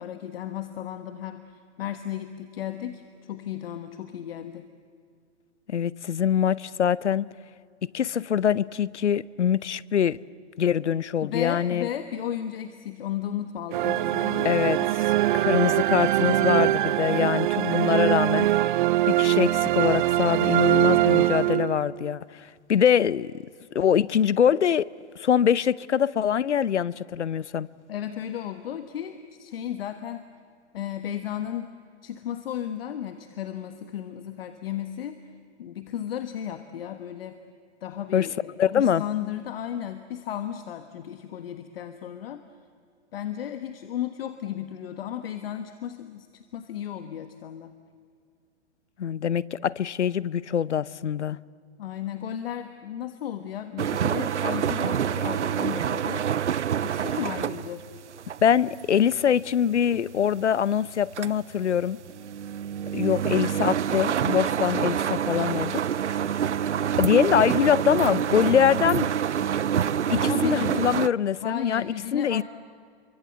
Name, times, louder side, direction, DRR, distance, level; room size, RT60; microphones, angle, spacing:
voice 1, 0.0-4.7 11.2-14.9 27.9-30.2 30.7-31.7 32.0-35.2 35.6-37.4 37.8-42.4 43.1-47.7 51.8-56.3 56.8-57.9 70.3-70.9 71.4-72.4, left 10 dB, 55° left, 1.5 m, -34 dB
voice 2, 5.7-7.3 7.9-10.2 10.6-11.9 14.4-14.8 15.3-18.5 19.1-23.4 23.7-24.9 25.2-27.7 38.1-38.3 38.6-39.0 49.0-51.4 58.4-62.0 62.9-65.8 67.0-69.1 70.1-72.4, left 8 dB, 85° left, 0.8 m, -23 dB
sound 1, 13.7-22.1, right 15 dB, 45° right, 0.6 m, -23 dB
sound 2, 53.8-60.4 60.9-71.1, right 9 dB, 90° right, 0.6 m, -27 dB
29.5 x 24.0 x 8.1 m
hypercardioid pair, 125°, 34 cm